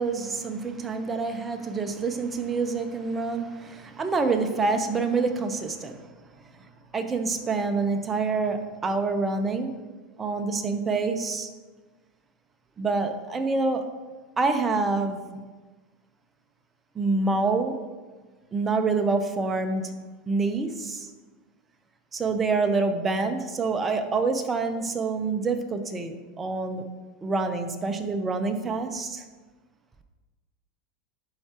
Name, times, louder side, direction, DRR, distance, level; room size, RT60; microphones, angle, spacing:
voice 1, 0.0-6.0 6.6-6.7 6.9-9.7 10.2-11.5 12.8-13.8 14.4-15.2 16.9-17.8 18.5-19.9 20.3-21.1 22.1-26.8 27.2-29.2, right 3 dB, 20° right, 6 dB, 0.7 m, -27 dB
11.5 x 4.6 x 2.9 m, 1.3 s
supercardioid pair, 125°, 0 cm